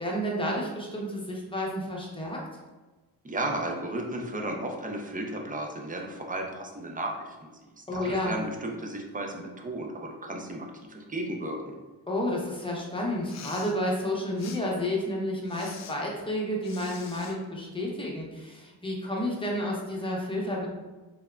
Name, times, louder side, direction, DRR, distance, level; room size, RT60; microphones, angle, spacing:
voice 1, 0.0-2.4 7.9-8.4 12.1-20.7, left 1 dB, 10° left, -3 dB, 0.9 m, -31 dB
voice 2, 3.2-7.1 7.9-11.6, right 1 dB, 20° right, 2 dB, 0.6 m, -34 dB
Respiratory sounds, 13.1-13.8 14.4-14.6 15.5-15.9 16.6-17.4, left 6 dB, 40° left, 0.4 m, -45 dB
3.4 x 2.2 x 2.4 m, 1.2 s
supercardioid pair, 55°, 43 cm